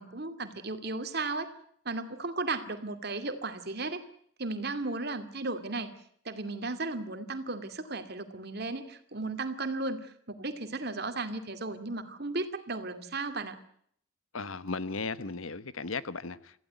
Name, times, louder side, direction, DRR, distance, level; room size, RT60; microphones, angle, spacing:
voice 1, 0.0-1.5 1.8-4.0 4.4-5.9 6.2-13.6, right 3 dB, 50° right, 2.4 m, -35 dB
voice 2, 14.3-16.6, left 4 dB, 80° left, 1.2 m, -36 dB
25.5 x 15.5 x 9.4 m
head